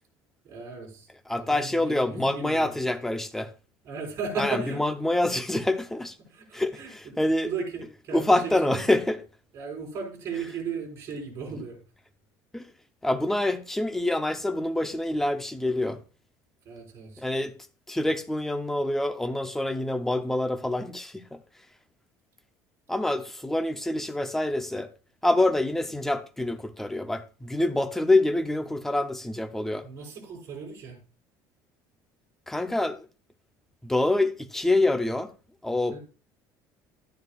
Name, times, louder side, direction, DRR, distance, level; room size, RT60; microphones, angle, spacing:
voice 1, 0.4-1.1 1.3-2.7 3.8-4.8 6.3-6.9 7.4-8.8 9.5-11.8 16.6-17.2 29.8-31.0 35.9-36.0, right 5 dB, 35° right, 4.6 m, -36 dB
voice 2, 1.3-3.5 4.4-6.2 6.5-7.5 8.1-9.2 12.5-12.7 13.0-16.0 17.2-17.6 17.9-21.4 22.9-24.9 25.2-29.9 32.5-33.1 33.8-35.3 35.6-36.0, left 1 dB, 5° left, 0.6 m, -26 dB
12.5 x 9.3 x 2.4 m
cardioid pair, 160°, 8 cm